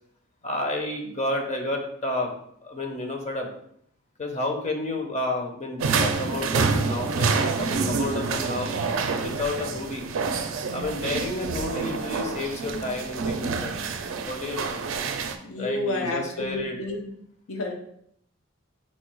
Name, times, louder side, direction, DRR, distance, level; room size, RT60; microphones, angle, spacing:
voice 1, 0.4-2.3 2.6-3.5 4.2-8.8 9.2-10.0 10.7-13.7 14.2-14.9 15.6-16.8, left 2 dB, 35° left, 3 dB, 0.6 m, -31 dB
sound 1, 5.8-15.4, right 4 dB, 65° right, 0.4 m, -27 dB
voice 2, 15.4-17.1 17.5-17.7, left 1 dB, 80° left, 2 dB, 0.7 m, -30 dB
4.3 x 2.3 x 4.4 m, 0.69 s
head